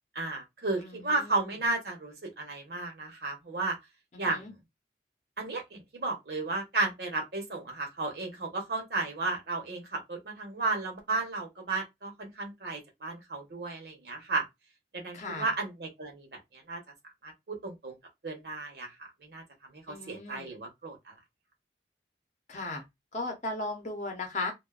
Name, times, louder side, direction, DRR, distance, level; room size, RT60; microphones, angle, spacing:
voice 1, 0.1-3.8 4.2-4.5 5.4-14.4 14.9-16.8 17.2-18.0 18.2-18.9 19.2-21.1, right 3 dB, 60° right, 0.9 m, -34 dB
voice 2, 0.8-1.6 4.1-4.5 15.1-15.5 19.9-20.5 22.5-22.8 23.1-24.5, left 2 dB, 40° left, 0.7 m, -37 dB
2.4 x 2.2 x 2.3 m
head